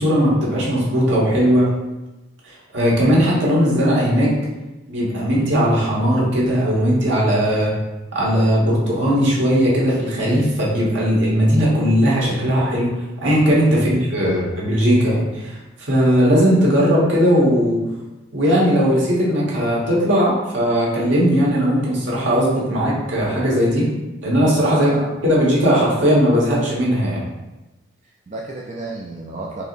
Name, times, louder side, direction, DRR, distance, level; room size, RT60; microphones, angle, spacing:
voice 1, 0.0-1.7 2.7-4.3 4.9-7.7 8.1-12.9 13.2-17.8 18.3-23.8 24.2-24.9 25.2-27.2, equal, 70° right, -5 dB, 1.3 m, -18 dB
voice 2, 13.7-14.5 24.7-25.1 28.0-29.6, right 2 dB, 35° right, -2 dB, 0.3 m, -33 dB
4.6 x 2.9 x 2.5 m, 1.1 s
head